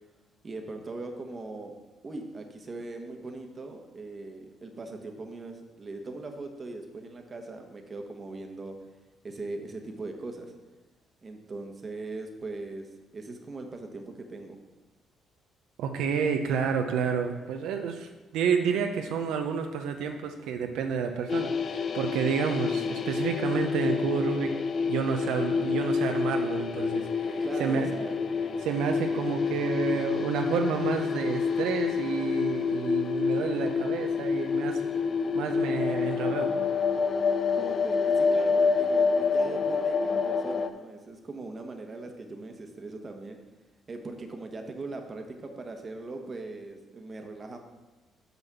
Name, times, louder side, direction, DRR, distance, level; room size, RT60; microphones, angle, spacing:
voice 1, 0.4-1.7 2.0-8.7 9.2-10.5 11.2-14.6 27.4-28.2 37.5-43.4 43.9-47.6, right 2 dB, 30° right, 4 dB, 1.1 m, -40 dB
voice 2, 15.8-24.5 24.9-27.9 28.6-34.8 35.3-36.5, right 6 dB, 85° right, 5 dB, 0.7 m, -30 dB
sound 1, 21.3-40.7, left 5 dB, 45° left, 0.5 m, -28 dB
6.0 x 5.3 x 6.8 m, 1.2 s
cardioid pair, 115°, 0 cm